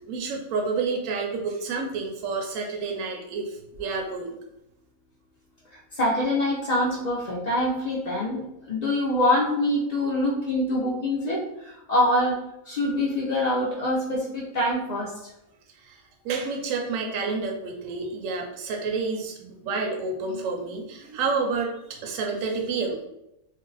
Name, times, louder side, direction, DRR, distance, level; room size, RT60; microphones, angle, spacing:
voice 1, 0.0-4.4 15.8-16.0 16.2-23.1, right 4 dB, 75° right, 1 dB, 0.9 m, -29 dB
voice 2, 6.0-12.4 12.7-15.3, left 1 dB, 65° left, -5 dB, 0.4 m, -25 dB
2.6 x 2.1 x 3.8 m, 0.86 s
omnidirectional pair, 1.5 m